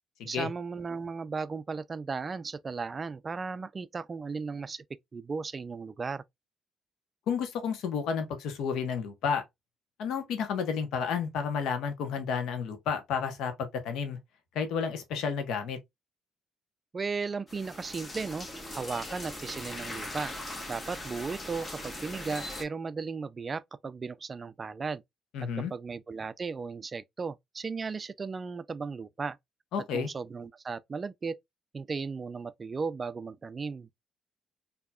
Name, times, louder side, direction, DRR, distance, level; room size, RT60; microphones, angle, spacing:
voice 1, 0.2-4.8 5.1-6.2 16.9-20.3 20.7-25.0 25.7-29.4 29.9-31.4 31.7-33.9, right 4 dB, 35° right, 0.3 m, -36 dB
voice 2, 7.3-9.4 10.0-14.2 14.5-15.8 25.3-25.7 29.7-30.1, left 6 dB, 85° left, 1.0 m, -31 dB
sound 1, 17.5-22.6, left 1 dB, 30° left, 1.5 m, -40 dB
4.5 x 2.8 x 2.2 m
cardioid pair, 90°, 0 cm